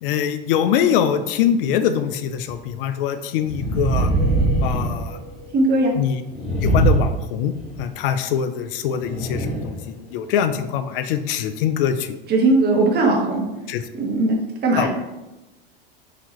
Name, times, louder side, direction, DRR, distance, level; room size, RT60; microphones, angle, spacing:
voice 1, 0.0-4.1 4.6-5.2 6.0-6.2 6.6-12.2 13.7-13.8 14.8-14.9, left 9 dB, 70° left, 10 dB, 0.5 m, -23 dB
sound 1, 2.5-2.6 3.4-5.6 6.3-7.8 9.0-9.8 10.3-10.4, right 2 dB, 15° left, 1.3 m, -22 dB
voice 2, 5.5-5.9 12.3-13.4 14.0-14.4 14.6-14.9, right 2 dB, 35° right, 0 dB, 1.0 m, -18 dB
4.1 x 2.7 x 3.0 m, 1.0 s
hypercardioid pair, 90°, 29 cm